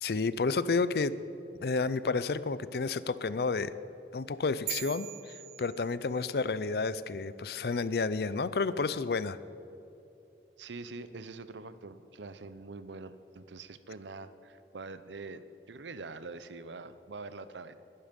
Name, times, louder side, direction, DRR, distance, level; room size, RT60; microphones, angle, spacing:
voice 1, 0.0-1.2 1.6-3.8 4.1-5.1 5.6-9.4, left 4 dB, 60° left, 16 dB, 0.5 m, -30 dB
sound 1, 4.7-6.4, right 15 dB, 55° right, 0.5 m, -41 dB
voice 2, 10.6-17.8, right 3 dB, 90° right, 13 dB, 0.7 m, -44 dB
20.0 x 11.5 x 5.3 m, 2.8 s
head